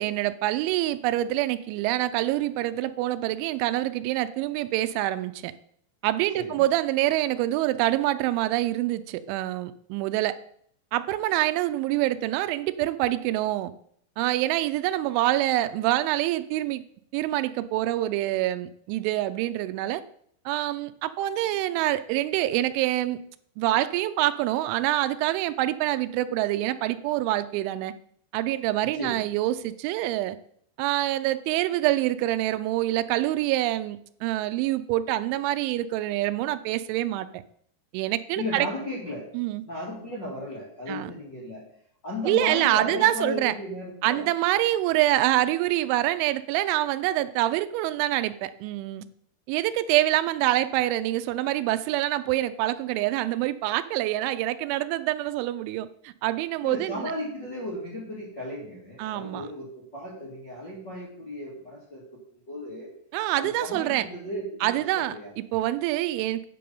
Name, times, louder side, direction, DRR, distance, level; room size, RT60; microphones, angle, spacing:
voice 1, 0.0-5.5 6.0-10.4 10.9-13.7 14.2-16.8 17.1-20.0 20.5-23.2 23.6-27.9 28.3-30.4 30.8-37.4 37.9-38.7 39.3-39.6 40.9-41.1 42.3-43.5 44.0-49.0 49.5-57.1 59.0-59.5 63.1-64.1 64.6-66.5, right 15 dB, 85° right, 12 dB, 2.9 m, -26 dB
voice 2, 38.3-39.3 39.6-41.6 42.0-44.3 56.6-62.0 62.5-62.9 63.3-64.7 64.9-65.3, left 1 dB, 45° left, -6 dB, 1.4 m, -35 dB
9.3 x 5.3 x 6.8 m, 0.65 s
omnidirectional pair, 5.4 m